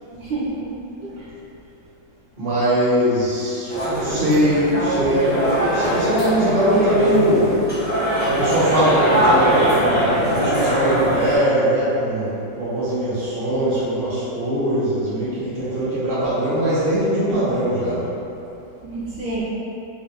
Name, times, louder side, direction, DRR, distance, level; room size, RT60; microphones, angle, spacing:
voice 1, 0.1-1.3 18.8-19.4, right 2 dB, 70° right, -8 dB, 1.2 m, -29 dB
voice 2, 2.4-7.5 8.3-18.1, right 1 dB, 35° right, -10 dB, 1.0 m, -21 dB
sound 1, 3.7-11.4, right 1 dB, 10° left, 0.4 m, -21 dB
4.1 x 2.4 x 3.3 m, 2.8 s
omnidirectional pair, 2.1 m